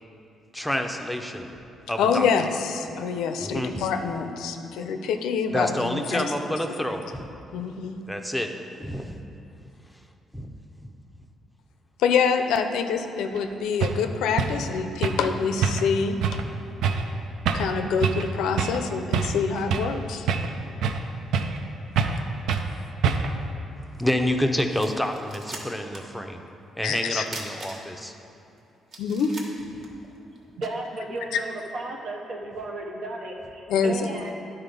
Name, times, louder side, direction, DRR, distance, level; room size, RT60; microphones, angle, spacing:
voice 1, 0.5-1.5 1.9-2.3 3.4-3.7 5.5-7.3 8.1-8.5 8.8-9.2 10.3-10.5 24.0-26.4 26.8-28.1, left 1 dB, 5° left, 4 dB, 0.6 m, -28 dB
voice 2, 2.0-6.3 7.5-8.0 12.0-16.2 17.5-20.3 26.8-27.3 29.0-29.3 31.3-31.4 33.7-34.3, left 6 dB, 85° left, 7 dB, 0.5 m, -26 dB
sound 1, 13.4-13.5 13.8-14.0 14.4-14.6 15.0-15.3 15.6-15.9 16.2-16.4 16.8-17.1 17.5-17.7 18.0-18.3 18.6-18.8 19.1-20.0 20.3-21.1 21.3-21.6 22.0-22.2 22.5-22.7 23.0-23.4, right 6 dB, 80° right, 0.4 m, -25 dB
sound 2, 24.4-24.5 24.8-26.1 26.4-26.5 27.3-28.1 28.5-28.6 28.9-30.4, right 2 dB, 45° right, 1.4 m, -40 dB
voice 3, 30.6-34.3, right 2 dB, 65° right, 0 dB, 0.8 m, -34 dB
10.0 x 4.1 x 5.2 m, 2.7 s
cardioid pair, 90°, 0 cm